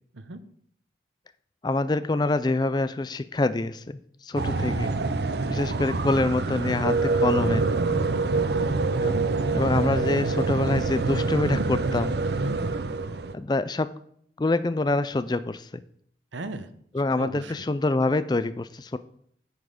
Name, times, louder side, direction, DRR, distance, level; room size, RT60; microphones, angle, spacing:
voice 1, 1.6-4.9 5.5-7.7 9.0-9.1 9.5-12.1 13.3-13.9 14.4-15.8 16.9-19.0, left 2 dB, 25° left, 14 dB, 0.4 m, -26 dB
sound 1, 4.4-13.3, right 3 dB, 60° right, 0.6 m, -26 dB
voice 2, 4.5-4.8 8.3-8.9 12.4-12.5 16.3-16.7 17.2-17.6, right 2 dB, 85° right, 11 dB, 0.9 m, -37 dB
9.8 x 7.3 x 5.0 m, 0.65 s
head